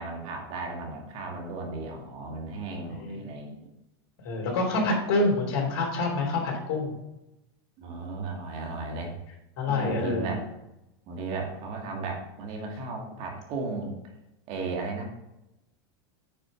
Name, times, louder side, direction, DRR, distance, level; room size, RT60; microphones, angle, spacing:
voice 1, 0.0-3.5 7.8-9.1 9.7-10.4 11.1-14.0 14.5-15.1, right 3 dB, 50° right, 1 dB, 2.2 m, -35 dB
voice 2, 4.2-6.9 9.6-10.4, left 2 dB, 60° left, 1 dB, 3.5 m, -27 dB
9.0 x 5.0 x 5.1 m, 0.91 s
supercardioid pair, 115°, 13 cm